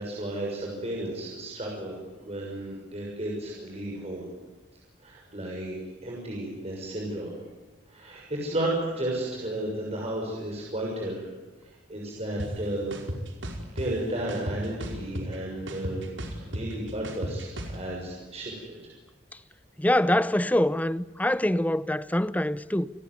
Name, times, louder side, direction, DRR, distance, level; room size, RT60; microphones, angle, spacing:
voice 1, 0.0-4.3 5.0-7.3 7.9-11.3 11.6-12.9 13.7-16.1 16.4-18.8, right 1 dB, 35° right, 6.5 m, -33 dB
sound 1, 12.4-12.5 12.9-13.9 14.3-15.4 15.7-17.8, equal, 85° right, 5.0 m, -34 dB
voice 2, 19.8-22.9, left 1 dB, 10° left, 0.8 m, -24 dB
29.0 x 19.5 x 9.7 m
head